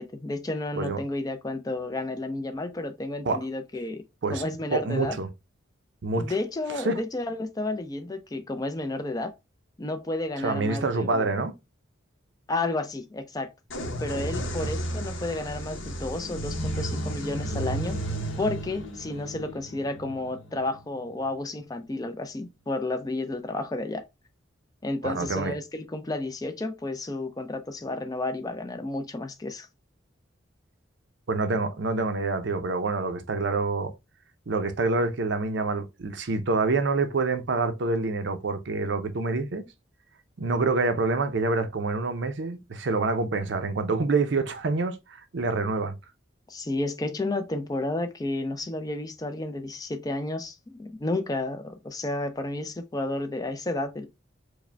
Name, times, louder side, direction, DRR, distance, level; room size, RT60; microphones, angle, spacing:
voice 1, 0.0-4.0 4.3-5.2 6.2-9.3 9.8-11.3 12.5-13.5 14.0-18.0 18.4-24.0 24.8-29.7 46.5-54.1, left 2 dB, 20° left, 0.4 m, -31 dB
voice 2, 4.7-5.3 6.0-6.3 6.7-7.0 10.4-11.5 25.0-25.5 31.3-33.9 34.5-39.6 40.4-45.9, right 3 dB, 65° right, 0.5 m, -27 dB
sound 1, 13.7-21.3, right 1 dB, 80° left, 0.9 m, -33 dB
4.8 x 2.1 x 3.2 m
head